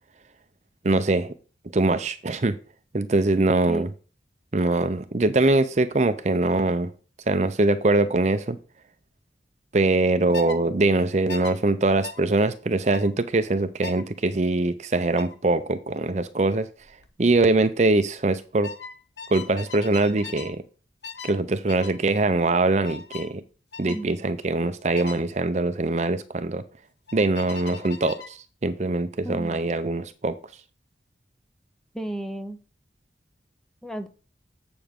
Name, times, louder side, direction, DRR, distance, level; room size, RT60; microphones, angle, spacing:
voice 1, 0.8-1.3 1.7-2.6 2.9-3.9 4.5-6.9 7.3-8.6 9.7-16.7 17.2-18.7 19.3-20.6 21.2-23.4 23.8-26.6 27.1-30.4, right 2 dB, 40° right, 0.5 m, -23 dB
sound 1, 10.3-10.6 11.3-11.5 12.0-12.2 12.9-13.1 13.8-14.1 15.2-15.4 16.8-17.1 17.4-17.7 18.6-20.6 21.0-21.4 21.7-22.0 22.8-23.3 23.7-24.0 24.9-25.2 27.1-28.4, left 6 dB, 80° left, 1.0 m, -39 dB
voice 2, 23.8-24.2 29.2-29.6 31.9-32.6 33.8-34.1, right 1 dB, 5° left, 0.7 m, -33 dB
8.0 x 6.9 x 3.7 m
head